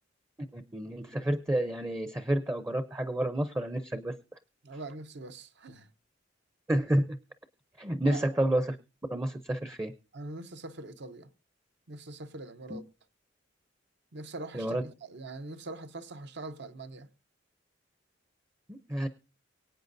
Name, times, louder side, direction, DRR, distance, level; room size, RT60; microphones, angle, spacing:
voice 1, 0.5-4.2 6.7-7.2 7.8-8.8 9.1-9.9 12.7-12.8 14.5-14.8 18.7-19.1, right 1 dB, 15° right, 0.6 m, -30 dB
voice 2, 4.6-5.9 8.0-8.3 10.1-11.3 11.9-12.9 14.1-17.1, right 2 dB, 60° right, 0.8 m, -43 dB
23.5 x 8.6 x 2.6 m
head